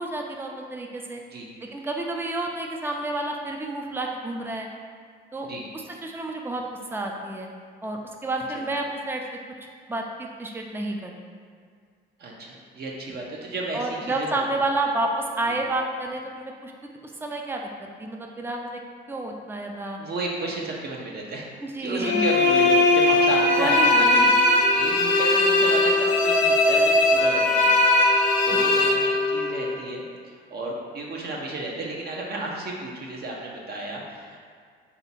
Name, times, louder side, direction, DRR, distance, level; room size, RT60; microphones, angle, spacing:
voice 1, 0.0-1.2 1.6-4.7 5.3-5.5 5.7-6.6 6.9-7.5 7.8-9.2 9.9-11.1 13.7-16.7 17.2-18.8 19.1-20.0 21.6-22.3 23.6-24.5, right 2 dB, 10° right, 1 dB, 0.4 m, -30 dB
voice 2, 12.2-14.4 15.5-15.6 20.0-21.5 21.8-24.2 24.7-27.7 28.4-34.5, right 2 dB, 50° right, -2 dB, 0.8 m, -33 dB
sound 1, 22.0-29.7, left 2 dB, 70° left, 0.6 m, -19 dB
3.5 x 2.8 x 4.1 m, 2.1 s
cardioid pair, 80°, 21 cm